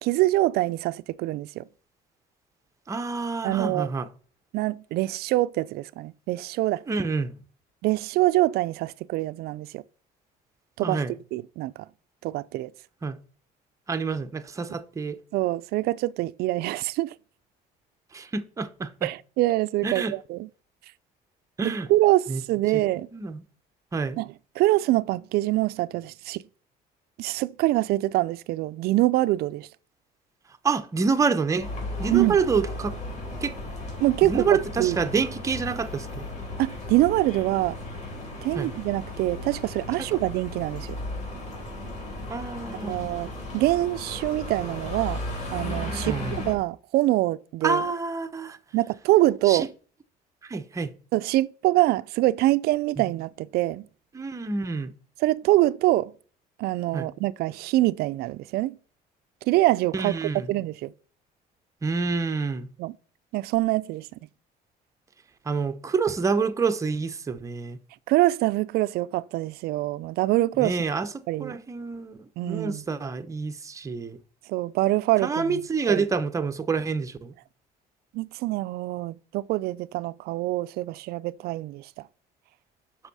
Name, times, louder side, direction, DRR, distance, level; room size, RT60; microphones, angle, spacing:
voice 1, 0.0-1.6 3.4-3.9 4.5-6.8 7.8-9.8 10.8-11.9 12.2-12.7 15.3-17.1 19.0-20.5 21.6-23.1 24.2-26.4 27.2-29.7 32.1-32.4 34.0-35.0 36.6-37.8 38.4-41.0 42.7-45.2 45.5-47.8 48.7-49.7 51.1-53.9 55.2-56.1 56.6-58.8 59.4-60.2 60.5-60.9 62.8-63.0 63.3-64.1 68.1-70.8 71.3-71.5 72.4-72.8 74.5-75.6 75.9-76.0 78.1-81.9, right 17 dB, 70° right, 0.4 m, -25 dB
voice 2, 2.9-4.1 6.9-7.3 10.8-11.1 13.0-13.2 13.9-15.2 18.1-19.1 19.8-20.1 21.6-21.9 22.3-22.4 23.1-23.4 23.9-24.2 30.6-31.7 32.0-32.9 33.4-33.5 34.3-36.3 38.5-38.7 42.3-43.0 46.0-46.4 47.6-48.6 49.5-49.6 50.4-50.9 54.1-54.9 56.9-57.1 59.9-60.5 61.8-62.7 65.5-67.8 70.6-71.1 71.4-74.2 75.2-77.3, right 4 dB, 20° right, 0.7 m, -27 dB
sound 1, 31.6-46.5, left 1 dB, 45° left, 3.8 m, -35 dB
8.1 x 6.2 x 4.1 m
cardioid pair, 150°, 17 cm